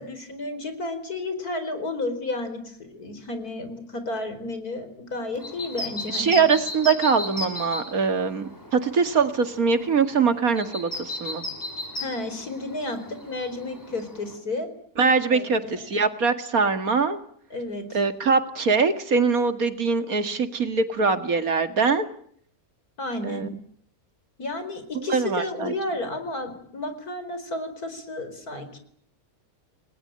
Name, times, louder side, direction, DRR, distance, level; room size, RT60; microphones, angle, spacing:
voice 1, 0.0-6.4 12.0-13.0 13.3-14.7 15.3-16.0 17.5-18.0 23.0-23.5 24.4-28.8, left 2 dB, 90° left, 9 dB, 5.1 m, -32 dB
sound 1, 5.3-14.4, left 2 dB, 10° left, 5.0 m, -36 dB
voice 2, 6.1-11.4 15.0-17.2 17.9-22.1 23.2-23.5 25.1-25.7, right 5 dB, 70° right, 9 dB, 2.5 m, -23 dB
29.5 x 20.5 x 8.9 m, 0.63 s
omnidirectional pair, 1.6 m